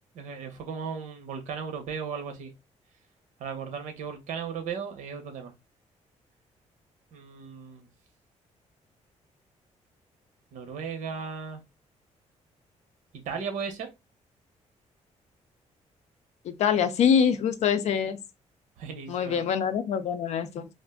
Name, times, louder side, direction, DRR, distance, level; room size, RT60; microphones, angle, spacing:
voice 1, 0.1-2.5 3.4-5.5 7.1-7.9 10.5-11.6 13.1-13.9 18.8-19.5, right 6 dB, 90° right, 0.7 m, -36 dB
voice 2, 16.5-18.2 19.1-20.7, left 7 dB, 65° left, 0.5 m, -24 dB
2.4 x 2.1 x 3.5 m
cardioid pair, 130°, 12 cm